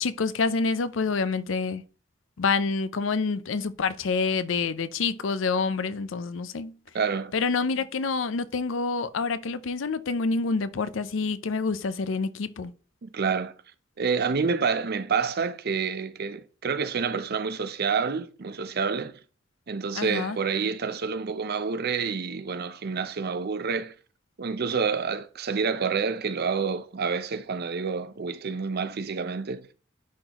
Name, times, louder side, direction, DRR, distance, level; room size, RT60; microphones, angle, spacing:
voice 1, 0.0-1.8 2.4-6.8 7.3-12.7 20.0-20.4, left 4 dB, 70° left, 0.5 m, -27 dB
voice 2, 6.9-7.3 13.0-13.5 14.0-19.1 19.7-23.9 24.4-29.7, right 5 dB, 55° right, 0.6 m, -28 dB
10.5 x 3.9 x 3.0 m
head